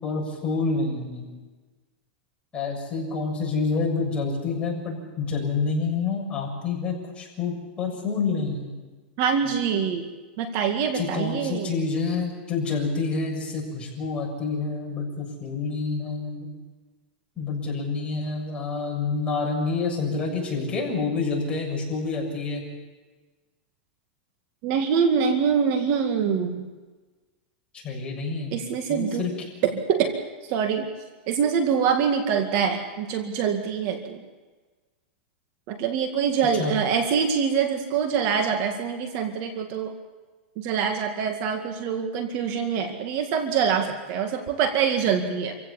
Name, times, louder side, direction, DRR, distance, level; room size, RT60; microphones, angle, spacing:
voice 1, 0.0-1.2 2.5-8.7 10.9-16.5 17.4-22.6 27.8-28.5 28.9-29.3 36.5-36.8, left 4 dB, 15° left, -2 dB, 7.1 m, -28 dB
voice 2, 9.2-10.1 10.4-11.9 24.6-26.7 28.5-29.2 29.6-30.1 30.5-30.9 31.3-34.2 35.7-39.9 40.6-45.6, right 7 dB, 45° right, 5 dB, 2.1 m, -24 dB
27.0 x 16.0 x 7.2 m, 1.3 s
supercardioid pair, 150°, 6 cm